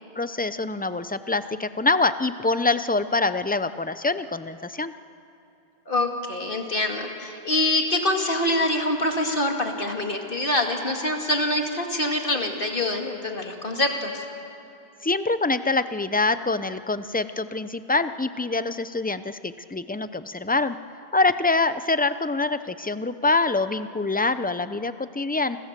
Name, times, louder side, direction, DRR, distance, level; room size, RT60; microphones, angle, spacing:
voice 1, 0.2-4.9 15.0-20.8 21.1-25.6, left 3 dB, 10° left, 12 dB, 0.5 m, -25 dB
voice 2, 5.9-14.2, left 1 dB, 55° left, 3 dB, 2.7 m, -25 dB
30.0 x 25.5 x 7.5 m, 2.7 s
omnidirectional pair, 1.1 m